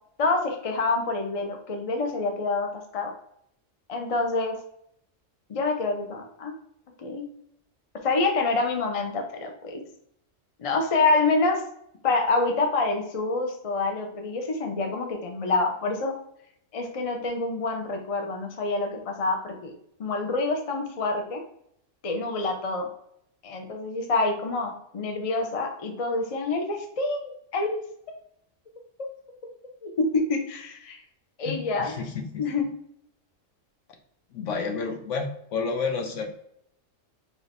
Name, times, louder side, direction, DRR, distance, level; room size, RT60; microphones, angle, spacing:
voice 1, 0.2-3.1 3.9-4.6 5.5-6.5 7.0-7.3 8.0-9.8 10.6-11.6 12.0-16.1 16.7-19.7 20.0-21.4 22.0-22.9 23.4-27.8 29.0-29.1 29.8-31.0 31.4-31.9 32.4-32.7, left 3 dB, 35° left, 3 dB, 0.6 m, -27 dB
voice 2, 31.5-32.5 34.3-36.3, left 5 dB, 70° left, 4 dB, 1.0 m, -30 dB
5.1 x 3.2 x 2.5 m, 0.72 s
omnidirectional pair, 1.3 m